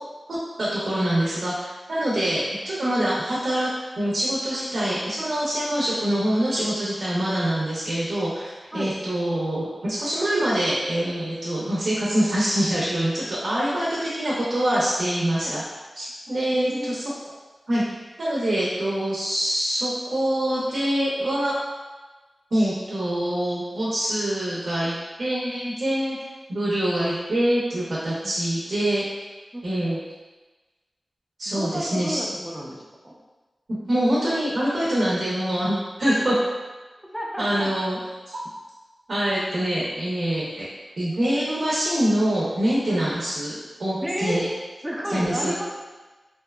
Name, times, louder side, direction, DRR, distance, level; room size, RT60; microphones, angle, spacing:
voice 1, 0.3-3.7 4.0-15.6 16.0-17.0 17.7-17.8 18.2-21.5 22.5-26.2 26.5-29.0 29.6-30.0 31.4-32.2 33.9-36.4 37.4-38.0 38.3-38.4 39.1-40.7 41.0-43.5 43.8-44.4 45.1-45.7, right 1 dB, 70° right, -7 dB, 0.6 m, -25 dB
voice 2, 8.7-9.0 15.4-15.6 16.5-17.0 28.2-28.4 29.5-29.6 31.5-33.1 37.1-37.7 42.9-43.1 44.0-44.5 44.8-45.7, equal, 10° right, -2 dB, 0.4 m, -31 dB
2.7 x 2.2 x 2.2 m, 1.2 s
wide cardioid pair, 70°, 0 cm